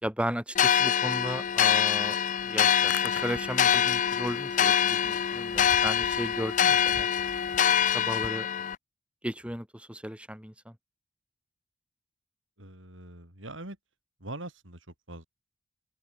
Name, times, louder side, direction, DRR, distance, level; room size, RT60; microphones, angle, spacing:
voice 1, 0.0-2.2 2.4-7.1 7.8-8.5 9.2-10.7, equal, 5° right, 3.4 m, -35 dB
sound 1, 0.5-8.7, left 9 dB, 40° left, 0.4 m, -25 dB
Hands, 2.6-8.3, left 4 dB, 65° left, 3.7 m, -45 dB
voice 2, 12.6-13.8 14.2-15.3, right 1 dB, 70° right, 5.9 m, -42 dB
head